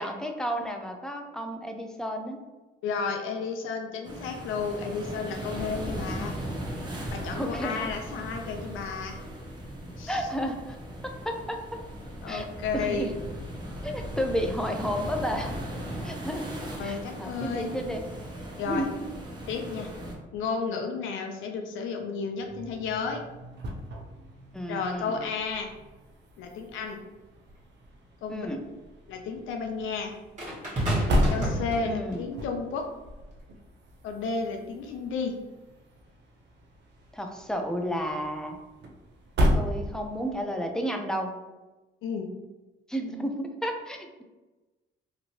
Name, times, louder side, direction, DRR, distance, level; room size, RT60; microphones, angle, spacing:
voice 1, 0.0-2.4 7.3-7.9 10.1-10.8 11.3-11.6 12.3-12.5 12.7-13.1 13.8-15.5 16.0-16.4 16.8-18.0 18.7-18.9 24.5-25.2 28.3-28.7 31.8-32.3 37.1-38.6 39.5-41.4 42.9-44.2, equal, 5° left, 3 dB, 0.4 m, -32 dB
voice 2, 2.8-6.4 7.1-9.2 10.0-10.3 12.2-13.1 16.8-17.7 18.6-18.9 19.5-19.9 20.3-23.2 24.7-25.7 26.4-27.0 28.2-28.5 29.1-30.2 31.3-32.9 34.0-35.4 42.0-42.3, left 5 dB, 80° left, 3 dB, 0.5 m, -32 dB
sound 1, 4.0-20.1, equal, 20° right, 0.8 m, -38 dB
sound 2, 22.3-40.4, equal, 60° right, 0.6 m, -34 dB
sound 3, 27.5-27.6 30.4-32.3 33.2-33.4, right 1 dB, 40° right, 1.4 m, -30 dB
2.9 x 2.6 x 2.8 m, 1.1 s
cardioid pair, 90°, 20 cm